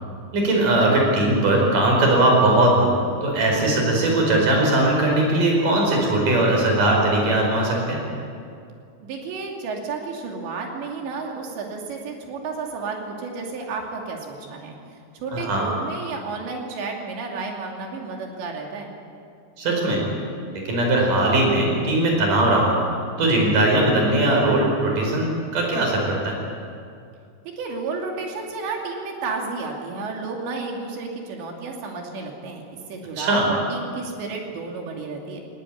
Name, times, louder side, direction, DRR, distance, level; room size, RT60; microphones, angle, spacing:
voice 1, 0.3-8.0 15.3-15.7 19.6-20.0 20.7-22.8 23.2-26.4 33.2-33.5, right 1 dB, 50° right, 0 dB, 6.2 m, -19 dB
voice 2, 9.0-14.8 15.1-18.9 27.6-32.6 32.9-35.4, right 4 dB, 80° right, 1 dB, 4.9 m, -32 dB
19.5 x 17.5 x 9.7 m, 2.4 s
omnidirectional pair, 5.0 m